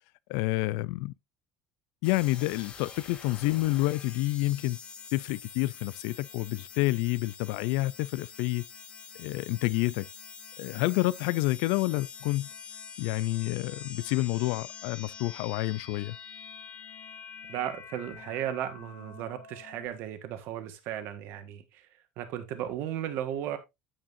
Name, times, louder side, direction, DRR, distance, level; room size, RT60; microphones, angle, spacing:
voice 1, 0.3-1.1 2.0-4.8 5.1-8.7 9.2-10.1 10.6-12.5 13.0-16.2, left 19 dB, 80° left, 0.4 m, -29 dB
sound 1, 2.0-19.9, left 6 dB, 30° left, 3.2 m, -46 dB
voice 2, 17.5-21.9 22.2-23.6, right 11 dB, 60° right, 1.5 m, -35 dB
9.0 x 8.7 x 2.6 m
cardioid pair, 145°, 4 cm